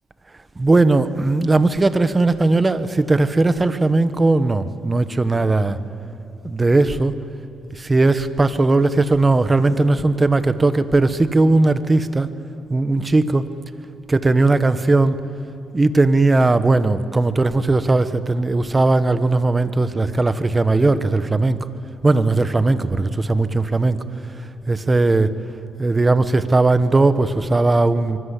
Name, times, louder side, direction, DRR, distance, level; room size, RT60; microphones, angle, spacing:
voice 1, 0.6-5.8 6.4-7.1 7.7-12.3 12.7-13.5 14.1-15.2 15.7-21.7 22.0-24.0 24.7-25.3 25.8-28.2, right 2 dB, 20° right, 12 dB, 1.4 m, -18 dB
25.5 x 23.5 x 8.5 m, 2.7 s
cardioid pair, 90°, 0 cm